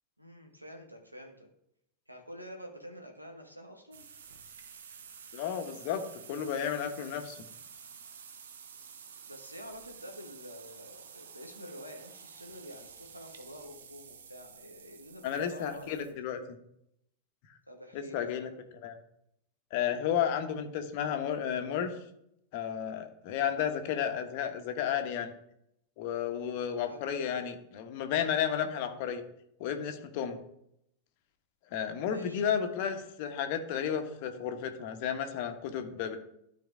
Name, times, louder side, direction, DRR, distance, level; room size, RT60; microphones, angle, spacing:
voice 1, 0.2-1.5 2.1-4.0 9.2-16.2 17.7-18.4 26.7-27.0 32.0-32.4, equal, 85° right, 2 dB, 1.5 m, -48 dB
sound 1, 3.9-16.1, right 7 dB, 65° right, 0.8 m, -51 dB
voice 2, 5.3-6.0 6.3-7.4 15.2-16.4 17.9-18.5 18.8-19.0 19.7-21.9 22.5-25.3 26.0-29.2 29.6-30.4 31.7-36.2, left 8 dB, 50° left, 7 dB, 1.1 m, -32 dB
12.5 x 4.6 x 3.6 m, 0.76 s
figure-of-eight pair, 90°, 0 cm